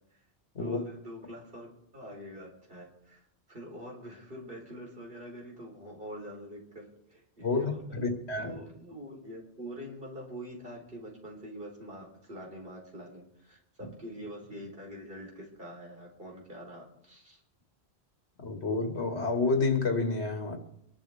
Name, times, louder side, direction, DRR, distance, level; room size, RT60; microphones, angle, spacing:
voice 1, 0.6-1.7 1.9-3.2 3.5-17.4, equal, 60° right, -1 dB, 4.3 m, -45 dB
voice 2, 7.4-8.6 18.4-20.6, left 3 dB, 80° left, 3 dB, 2.3 m, -29 dB
25.0 x 11.5 x 3.6 m, 0.77 s
omnidirectional pair, 1.1 m